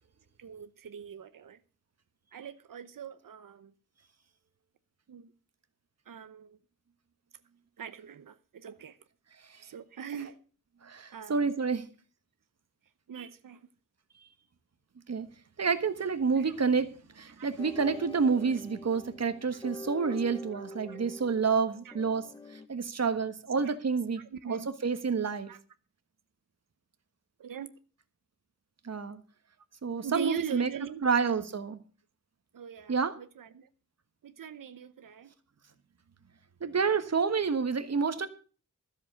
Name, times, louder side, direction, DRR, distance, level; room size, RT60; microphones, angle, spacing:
voice 1, 0.4-1.6 2.3-3.7 5.1-5.3 6.1-6.6 7.8-9.0 9.6-10.3 11.1-11.5 13.1-13.7 16.4-16.5 17.4-17.5 20.1-20.2 20.9-21.0 21.8-22.0 23.6-23.7 24.3-24.7 25.5-25.6 27.4-27.7 30.0-31.1 32.5-33.7 34.2-35.3, right 8 dB, 90° right, 0.9 m, -41 dB
voice 2, 10.8-11.8 15.1-15.3 15.6-22.2 22.7-24.2 24.5-25.5 28.8-29.2 29.8-30.7 31.0-31.8 32.9-33.1 36.6-38.3, right 5 dB, 55° right, 1.4 m, -29 dB
sound 1, 17.6-22.7, left 1 dB, 10° left, 0.8 m, -45 dB
13.5 x 7.5 x 6.6 m
wide cardioid pair, 140°, 32 cm